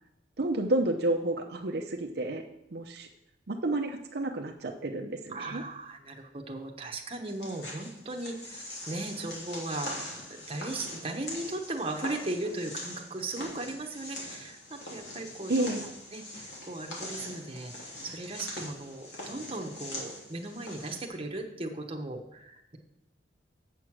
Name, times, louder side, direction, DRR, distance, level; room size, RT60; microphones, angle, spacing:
voice 1, 0.4-2.4 2.7-3.1 3.5-5.6 15.5-15.9, right 2 dB, 60° right, 2 dB, 0.7 m, -30 dB
voice 2, 5.3-10.0 10.3-15.7 16.1-17.7 18.0-22.8, right 2 dB, 30° right, 3 dB, 1.0 m, -37 dB
sound 1, 7.2-21.1, left 1 dB, 65° left, 2.8 m, -42 dB
8.0 x 6.4 x 6.0 m, 0.86 s
head